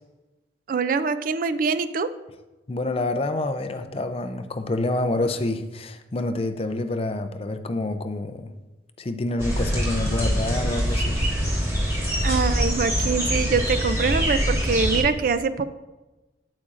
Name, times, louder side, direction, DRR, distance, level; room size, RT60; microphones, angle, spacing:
voice 1, 0.7-2.1 12.2-15.7, right 5 dB, 50° right, 13 dB, 0.3 m, -24 dB
voice 2, 2.7-8.5 9.0-11.2, left 2 dB, 30° left, 8 dB, 0.5 m, -27 dB
sound 1, 9.4-15.0, equal, 15° right, 2.0 m, -24 dB
8.6 x 8.5 x 2.5 m, 1.1 s
head